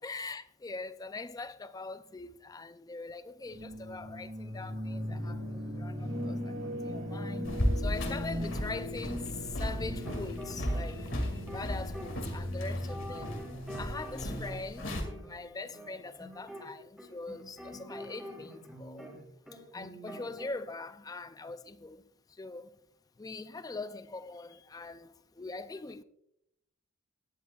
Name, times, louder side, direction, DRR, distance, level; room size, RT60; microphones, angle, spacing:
voice 1, 0.0-5.4 5.8-6.5 6.8-9.3 9.6-13.3 13.8-14.9 15.3-19.1 19.7-22.0 22.4-22.7 23.2-25.1 25.4-26.0, left 3 dB, 15° left, 0.3 m, -42 dB
sound 1, 3.5-13.4, left 1 dB, 60° right, 4.0 m, -38 dB
sound 2, 7.4-15.0, equal, 55° left, 2.3 m, -35 dB
sound 3, 9.7-19.2 19.5-20.5, equal, 5° right, 2.9 m, -46 dB
17.0 x 11.0 x 2.4 m
head